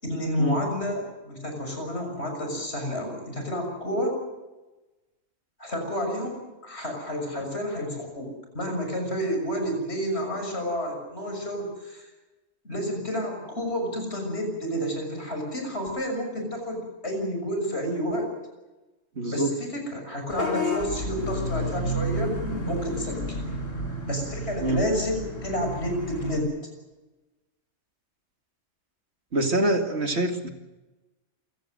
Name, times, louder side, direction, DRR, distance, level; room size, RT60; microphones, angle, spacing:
voice 1, 0.0-4.2 5.6-12.1 12.6-18.3 19.3-22.4 22.7-23.4 24.1-26.5, equal, 55° left, 3 dB, 7.0 m, -30 dB
voice 2, 19.2-19.6 24.6-24.8 29.3-30.5, right 1 dB, 60° right, 6 dB, 2.5 m, -25 dB
Vehicle horn car horn honking / Bus, 20.3-26.4, equal, 80° left, 5.6 m, -31 dB
27.5 x 17.0 x 7.8 m, 1.1 s
omnidirectional pair, 1.3 m